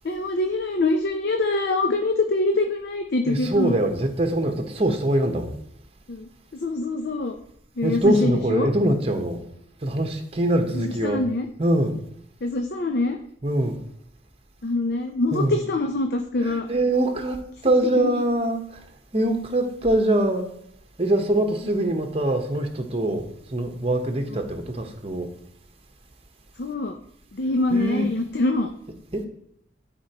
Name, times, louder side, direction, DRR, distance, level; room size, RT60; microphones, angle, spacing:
voice 1, 0.0-3.8 6.1-6.3 6.6-7.3 7.8-8.7 10.7-11.5 12.4-13.2 14.6-16.7 18.0-18.2 24.3-24.5 26.6-27.0 27.3-28.7, left 2 dB, 55° left, 4 dB, 0.5 m, -24 dB
voice 2, 3.2-5.6 7.8-9.4 9.8-11.2 11.6-11.9 13.4-13.8 15.3-15.6 16.4-18.8 19.1-20.5 21.0-23.2 23.5-25.3 27.7-28.1 29.1-29.2, right 1 dB, 30° right, 5 dB, 1.0 m, -23 dB
12.5 x 4.4 x 2.9 m, 0.73 s
head